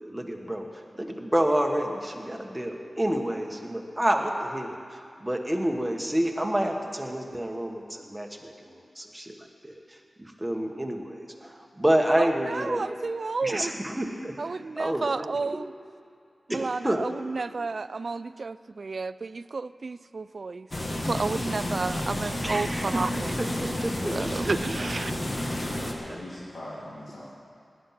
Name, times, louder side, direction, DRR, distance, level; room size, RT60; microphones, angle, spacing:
voice 1, 0.0-12.8 13.4-15.3 16.5-17.0 22.4-24.5 26.1-26.2, right 1 dB, 10° right, 2 dB, 1.5 m, -29 dB
voice 2, 12.2-13.7 14.4-15.7 16.5-23.4 24.1-25.1, right 4 dB, 60° right, 15 dB, 0.4 m, -31 dB
sound 1, 20.7-25.9, left 1 dB, 40° left, 1.6 m, -31 dB
voice 3, 25.8-27.3, left 1 dB, 80° left, -8 dB, 2.5 m, -41 dB
17.5 x 11.0 x 5.9 m, 2.4 s
wide cardioid pair, 85°, 0 cm